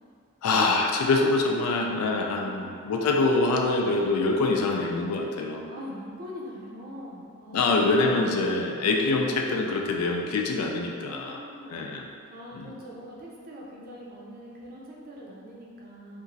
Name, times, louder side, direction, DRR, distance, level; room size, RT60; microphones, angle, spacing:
voice 1, 0.4-5.6 7.5-11.4 11.7-12.1 12.5-12.7, left 3 dB, 90° left, 1 dB, 0.3 m, -25 dB
voice 2, 2.3-2.7 5.7-7.7 8.7-8.8 10.9-11.9 12.3-16.2, equal, 40° right, -4 dB, 0.4 m, -43 dB
2.9 x 2.4 x 2.6 m, 2.3 s
head